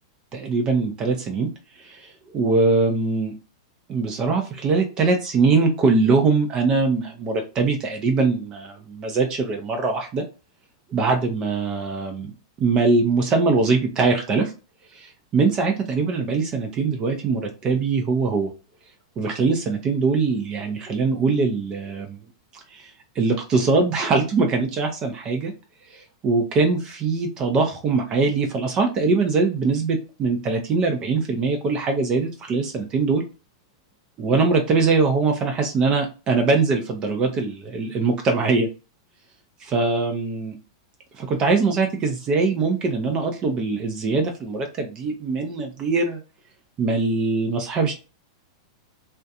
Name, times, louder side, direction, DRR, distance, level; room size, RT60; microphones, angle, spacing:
voice 1, 0.3-1.5 1.8-3.3 3.9-10.2 10.9-12.3 12.6-14.5 14.9-18.5 19.2-22.2 22.7-22.9 23.2-25.5 25.9-33.2 34.2-38.7 39.6-40.5 41.2-46.2 46.8-47.9, right 4 dB, 30° right, 3 dB, 0.5 m, -22 dB
2.4 x 2.1 x 2.7 m, 0.32 s
hypercardioid pair, 120°, 3 cm